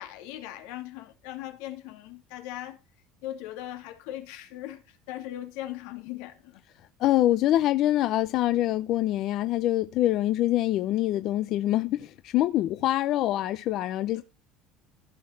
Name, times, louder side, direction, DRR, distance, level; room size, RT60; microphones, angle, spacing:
voice 1, 0.0-2.8 3.2-6.6 14.1-14.2, left 13 dB, 85° left, 2.8 m, -39 dB
voice 2, 7.0-14.2, left 14 dB, 50° left, 0.6 m, -25 dB
15.0 x 6.6 x 4.6 m
cardioid pair, 165°, 0 cm